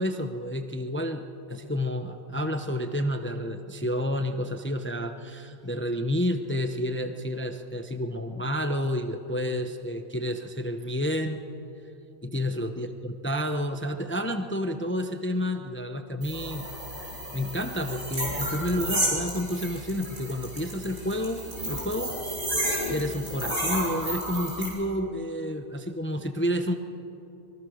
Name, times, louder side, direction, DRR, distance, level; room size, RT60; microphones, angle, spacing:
voice 1, 0.0-11.4 12.2-16.7 17.3-22.1 22.9-26.8, equal, 10° left, 7 dB, 0.7 m, -30 dB
sound 1, 16.2-24.7, right 1 dB, 80° right, 6.8 m, -32 dB
24.5 x 23.0 x 6.5 m, 2.8 s
omnidirectional pair, 1.4 m